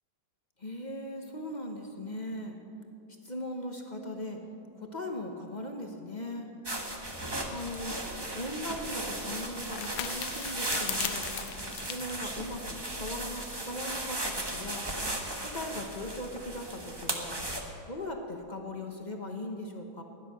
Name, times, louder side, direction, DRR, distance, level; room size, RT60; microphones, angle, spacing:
voice 1, 0.6-2.6 3.2-4.4 4.7-6.5 7.5-11.3 11.8-14.9 15.4-17.4 17.9-20.0, left 1 dB, 30° left, 3 dB, 0.8 m, -39 dB
sound 1, 6.6-17.6, right 1 dB, 15° right, 1.0 m, -36 dB
sound 2, 8.2-13.3, left 12 dB, 90° left, 1.5 m, -41 dB
15.5 x 11.0 x 6.5 m, 2.6 s
omnidirectional pair, 2.3 m